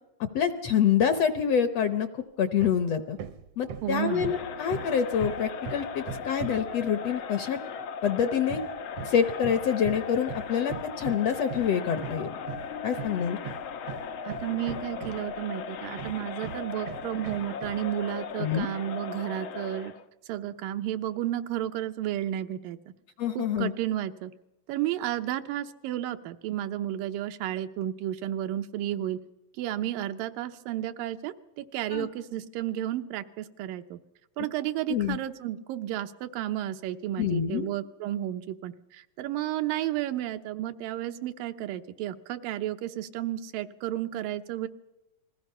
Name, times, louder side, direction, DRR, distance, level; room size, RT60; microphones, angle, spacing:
voice 1, 0.3-3.2 3.6-7.6 8.0-8.6 9.0-12.3 12.8-13.4 18.4-18.7 23.2-23.7 31.9-32.1 34.9-35.2 37.2-37.7, left 8 dB, 70° left, 9 dB, 1.6 m, -26 dB
Hammer, 2.6-2.9 3.2-6.8 8.5-15.4 16.0-17.9, right 7 dB, 70° right, 1.6 m, -40 dB
voice 2, 3.8-4.3 14.2-19.9 20.3-22.8 23.4-24.3 24.7-29.2 29.6-34.0 34.4-44.7, right 12 dB, 85° right, 8 dB, 2.6 m, -32 dB
Crowd, 3.9-20.0, left 6 dB, 85° left, 1.1 m, -38 dB
29.0 x 20.5 x 5.6 m, 0.90 s
omnidirectional pair, 3.9 m